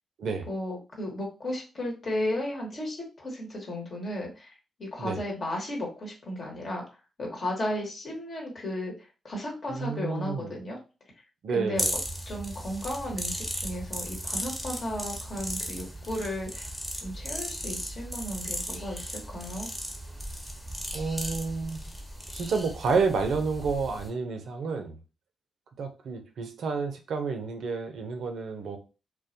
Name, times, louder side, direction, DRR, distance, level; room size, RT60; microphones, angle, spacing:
voice 1, 0.5-4.5 4.8-6.8 7.2-8.9 9.2-10.8 11.5-11.8 12.3-16.7 17.0-19.7, left 1 dB, 55° left, -2 dB, 1.1 m, -34 dB
voice 2, 9.7-10.6 11.4-12.0 20.9-21.8 22.3-25.0 25.8-28.8, right 4 dB, 70° right, 5 dB, 0.4 m, -30 dB
sound 1, 11.8-24.1, equal, 5° left, 0.8 m, -36 dB
2.2 x 2.1 x 2.6 m, 0.32 s
hypercardioid pair, 45°, 0 cm